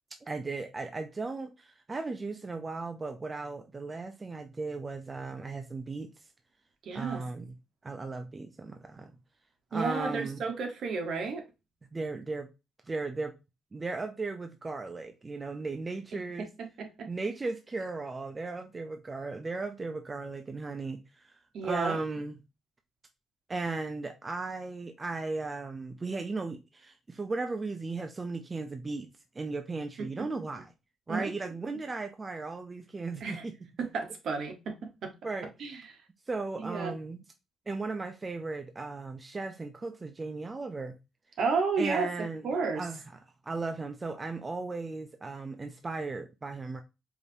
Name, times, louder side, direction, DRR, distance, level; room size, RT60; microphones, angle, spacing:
voice 1, 0.2-6.1 6.9-7.5 7.8-9.1 9.7-10.4 11.9-12.5 12.8-13.3 13.7-16.5 17.1-22.3 23.5-30.7 31.1-33.5 35.2-35.5 36.3-37.2 37.7-41.0 41.8-42.5 42.7-43.0 43.4-46.8, right 3 dB, 25° right, 0.4 m, -36 dB
voice 2, 6.8-7.2 9.7-11.4 16.1-16.2 16.6-17.1 21.5-22.0 30.0-30.1 31.1-31.2 33.2-33.4 33.8-35.1 35.6-35.8 36.6-36.9 41.4-42.1 42.4-42.8, right 4 dB, 65° right, 1.0 m, -32 dB
4.9 x 2.6 x 2.6 m
cardioid pair, 90°, 0 cm